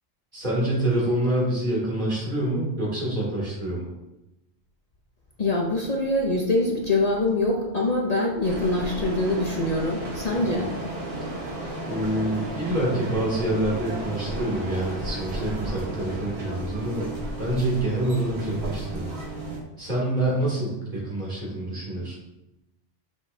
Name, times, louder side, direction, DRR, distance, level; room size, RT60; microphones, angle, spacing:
voice 1, 0.3-3.9 10.5-10.6 11.8-17.1 17.4-19.1 19.8-22.2, right 1 dB, 40° right, -5 dB, 2.7 m, -26 dB
voice 2, 5.4-10.7, left 2 dB, 40° left, -1 dB, 0.8 m, -24 dB
sound 1, 8.4-19.6, right 1 dB, 60° right, 1.6 m, -33 dB
7.8 x 6.0 x 2.7 m, 0.95 s
omnidirectional pair, 1.2 m